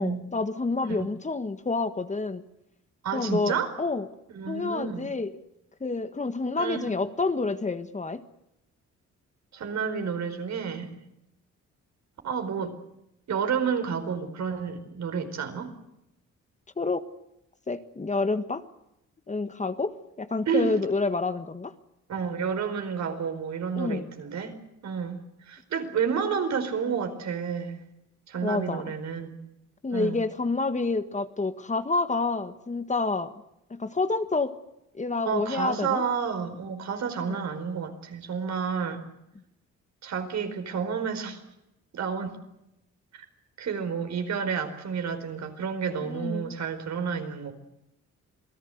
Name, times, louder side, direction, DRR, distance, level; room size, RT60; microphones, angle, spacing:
voice 1, 0.0-2.4 3.1-4.1 4.5-5.3 5.8-8.2 16.8-17.0 17.7-18.6 19.3-21.7 23.8-24.1 28.4-28.9 29.8-33.3 33.7-34.6 34.9-36.0 37.2-37.4 39.3-39.4 46.0-46.5, left 3 dB, 25° left, 10 dB, 1.6 m, -28 dB
voice 2, 3.0-3.7 4.3-5.1 6.5-7.0 9.5-10.9 12.2-12.7 13.3-15.7 20.5-20.7 22.1-24.5 24.8-25.2 25.5-27.8 28.3-29.4 29.9-30.2 35.2-39.0 40.0-41.4 41.9-42.4 43.1-43.2 43.6-47.5, right 6 dB, 65° right, 7 dB, 4.7 m, -30 dB
27.5 x 18.0 x 8.0 m, 0.86 s
cardioid pair, 90°, 30 cm